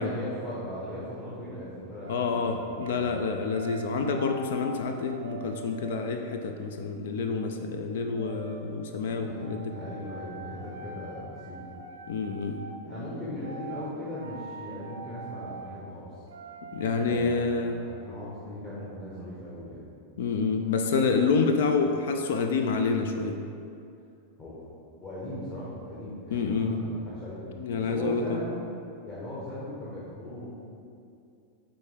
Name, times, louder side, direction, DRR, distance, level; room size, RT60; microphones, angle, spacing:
voice 1, 0.0-3.2 9.2-11.6 12.8-16.1 16.9-19.9 24.4-24.7 25.0-27.4 27.7-28.6 29.0-30.5, left 1 dB, 25° left, -9 dB, 1.5 m, -38 dB
sound 1, 2.0-3.0 3.5-6.5 8.1-8.6 9.3-12.8 13.4-13.9 14.2-15.7 16.3-17.2, right 3 dB, 65° right, 0.5 m, -43 dB
voice 2, 2.1-9.7 12.1-12.6 16.7-17.8 20.2-23.3 26.3-26.7 27.6-28.4, left 4 dB, 55° left, 5 dB, 0.4 m, -28 dB
9.2 x 3.6 x 3.5 m, 2.5 s
figure-of-eight pair, 90°, 0 cm